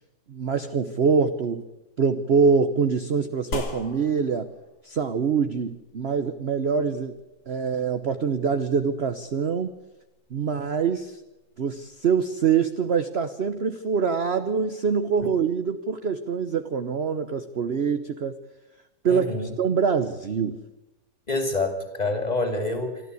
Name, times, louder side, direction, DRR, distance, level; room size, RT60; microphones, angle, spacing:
voice 1, 0.3-1.6 2.0-4.5 4.8-7.2 7.5-9.7 10.3-11.2 11.6-18.4 19.0-20.6, right 6 dB, 50° right, 9 dB, 0.8 m, -24 dB
sound 1, 3.5-12.2, left 3 dB, 75° left, 3.1 m, -43 dB
voice 2, 19.1-19.5 21.3-23.0, left 2 dB, 20° left, 5 dB, 2.8 m, -27 dB
26.5 x 12.5 x 8.3 m, 0.97 s
omnidirectional pair, 2.1 m